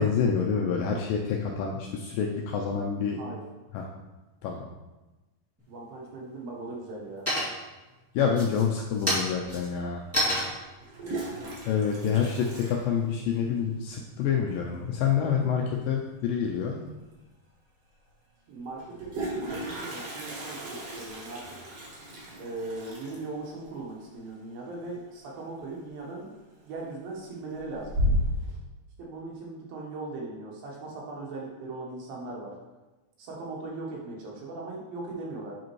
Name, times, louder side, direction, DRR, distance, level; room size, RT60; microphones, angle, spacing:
voice 1, 0.0-3.2 3.7-3.9 4.4-4.6 8.1-10.0 11.7-16.8, left 7 dB, 80° left, 0 dB, 2.0 m, -27 dB
sound 1, 5.6-6.2 6.6-7.0 7.2-7.8 8.3-12.7, equal, 10° right, 0.8 m, -31 dB
voice 2, 5.7-7.3 11.0-11.3 18.5-21.6 22.4-26.3 26.6-27.9 29.0-32.6 33.2-35.5, right 2 dB, 70° right, -2 dB, 2.9 m, -39 dB
Toilet flush, 9.4-9.5 10.7-13.5 13.8-13.9 14.2-14.3 14.5-14.9 16.7-16.8 17.1-17.2 18.7-25.4 25.7-26.2 26.6-27.1 27.5-28.5, equal, 50° right, 2.0 m, -34 dB
8.0 x 5.0 x 3.1 m, 1.1 s
omnidirectional pair, 4.5 m